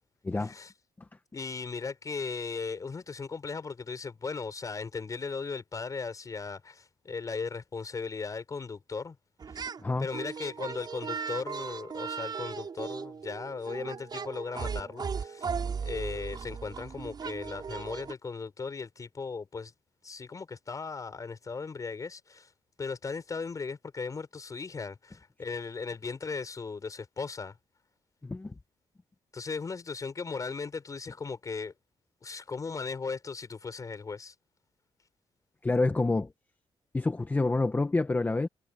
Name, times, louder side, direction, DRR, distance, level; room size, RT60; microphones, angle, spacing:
voice 1, 0.3-0.7 1.3-9.2 9.6-9.7 10.0-15.5 15.8-19.7 20.0-22.5 22.8-27.6 29.3-31.7 32.2-34.3, left 4 dB, 35° left, 5.8 m, -37 dB
sound 1, 9.4-9.8 10.1-18.1, right 6 dB, 40° right, 6.5 m, -37 dB
voice 2, 28.2-28.5 35.6-36.3 36.9-38.5, left 3 dB, 20° left, 1.3 m, -27 dB
cardioid pair, 115°, 11 cm